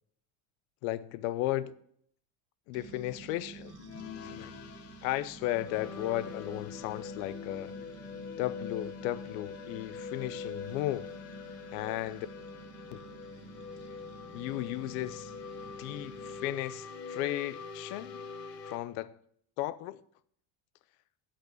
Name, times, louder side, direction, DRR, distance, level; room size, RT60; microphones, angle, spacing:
voice 1, 0.8-1.8 2.7-3.7 4.2-4.5 5.0-7.7 8.4-11.1 11.7-12.3 12.9-13.0 14.3-15.3 15.8-18.2 18.7-19.2 19.6-20.0, left 15 dB, 80° left, 0.7 m, -35 dB
sound 1, 2.7-16.5, right 6 dB, 50° right, 1.4 m, -52 dB
sound 2, 3.7-18.8, left 5 dB, 40° left, 0.9 m, -44 dB
8.2 x 5.9 x 7.7 m
cardioid pair, 160°, 40 cm